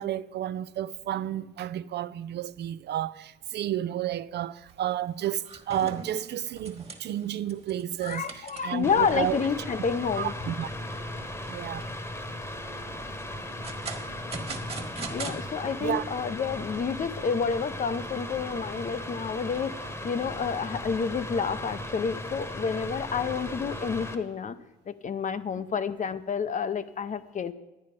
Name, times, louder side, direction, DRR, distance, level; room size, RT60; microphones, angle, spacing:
voice 1, 0.0-9.4 10.2-10.7 11.5-11.8 15.8-16.0, right 11 dB, 60° right, 0.4 m, -31 dB
sound 1, 4.7-4.9 5.2-8.9 9.4-9.5 10.0-10.1 10.5-11.0 11.5-12.1 13.2-15.4, right 3 dB, 30° right, 1.6 m, -40 dB
voice 2, 8.0-10.3 15.1-24.6 24.9-27.5, left 6 dB, 40° left, 0.6 m, -29 dB
Mechanical fan, 8.8-24.1, left 1 dB, 10° left, 1.1 m, -37 dB
11.0 x 9.4 x 5.1 m
cardioid pair, 90°, 20 cm